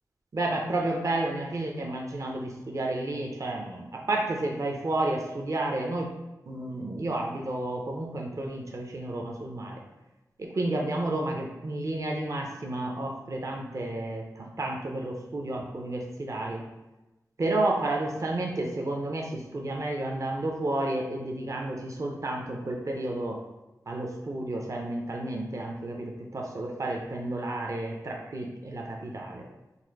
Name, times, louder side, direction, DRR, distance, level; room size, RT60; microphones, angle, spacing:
voice 1, 0.3-6.1 6.5-9.8 10.4-16.6 17.4-23.4 23.9-29.5, right 2 dB, 50° right, 0 dB, 0.6 m, -31 dB
4.1 x 2.5 x 4.6 m, 1.0 s
wide cardioid pair, 80°, 7 cm